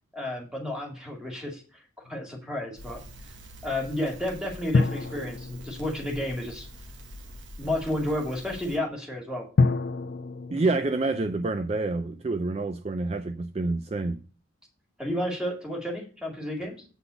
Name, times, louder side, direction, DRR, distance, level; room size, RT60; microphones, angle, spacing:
voice 1, 0.1-1.8 2.1-3.0 3.6-6.7 7.6-9.5 15.0-16.8, left 1 dB, 5° right, 2.1 m, -31 dB
sound 1, 2.0-3.0 4.7-7.1 9.6-12.6, left 3 dB, 50° left, 0.4 m, -29 dB
Crackle, 2.8-8.8, equal, 60° right, 1.3 m, -45 dB
voice 2, 10.5-14.2, right 3 dB, 30° right, 0.4 m, -28 dB
8.1 x 4.0 x 6.8 m
head